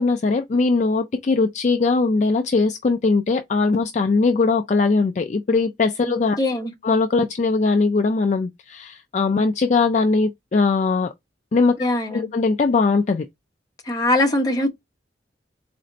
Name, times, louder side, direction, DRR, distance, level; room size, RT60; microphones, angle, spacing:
voice 1, 0.0-6.4 6.8-11.1 11.5-13.3, left 4 dB, 40° left, 0.4 m, -20 dB
voice 2, 6.4-6.7 11.8-12.3 13.9-14.7, left 1 dB, 20° left, 0.8 m, -21 dB
4.2 x 2.5 x 3.9 m
head